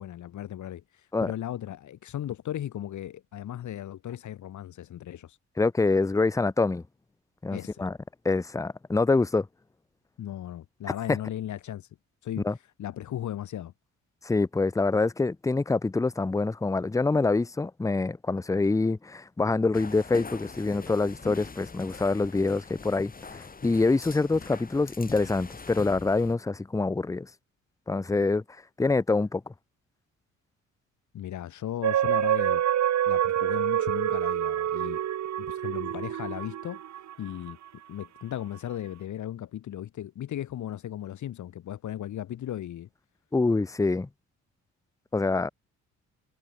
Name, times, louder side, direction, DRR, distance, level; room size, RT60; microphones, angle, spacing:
voice 1, 0.0-5.4 7.5-7.8 10.2-11.9 12.2-12.5 12.8-13.7 31.1-32.6 33.1-35.0 35.4-36.8 37.2-37.6 37.9-42.9, left 11 dB, 70° left, 7.4 m, -36 dB
voice 2, 5.6-6.8 7.4-7.9 8.2-9.5 12.4-12.5 14.2-27.3 27.9-28.4 28.8-29.5 43.3-44.1 45.1-45.5, left 3 dB, 10° left, 0.7 m, -25 dB
sound 1, 19.7-26.3, left 4 dB, 30° left, 3.9 m, -43 dB
sound 2, 31.8-37.5 38.0-38.1, right 11 dB, 65° right, 2.1 m, -27 dB
cardioid pair, 90°, 30 cm